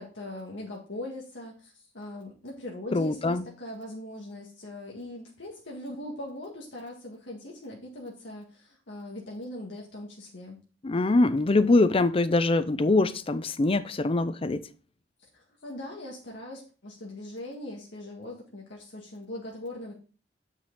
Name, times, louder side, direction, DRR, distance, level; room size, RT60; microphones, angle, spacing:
voice 1, 0.0-10.6 15.3-19.9, left 1 dB, 85° left, 1.9 m, -40 dB
voice 2, 2.9-3.4 10.8-14.6, left 2 dB, 30° left, 0.5 m, -23 dB
8.1 x 6.1 x 3.8 m
head